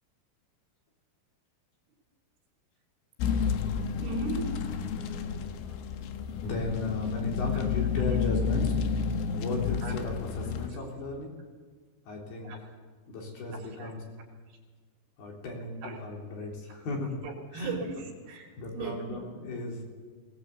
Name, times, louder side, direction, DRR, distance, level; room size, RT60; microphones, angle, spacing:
sound 1, 3.2-10.7, left 6 dB, 90° left, 4.0 m, -30 dB
voice 1, 4.0-4.6 8.0-8.2 9.8-10.0 12.4-12.6 13.5-13.9 14.5-14.6 15.8-16.0 16.7-16.8 17.2-19.3, right 3 dB, 80° right, 2 dB, 5.9 m, -38 dB
voice 2, 6.4-11.4 12.1-12.5 13.1-14.0 15.2-17.2 17.5-17.8 18.6-19.8, left 2 dB, 55° left, 0 dB, 5.4 m, -35 dB
20.5 x 19.5 x 8.4 m, 1.5 s
omnidirectional pair, 5.4 m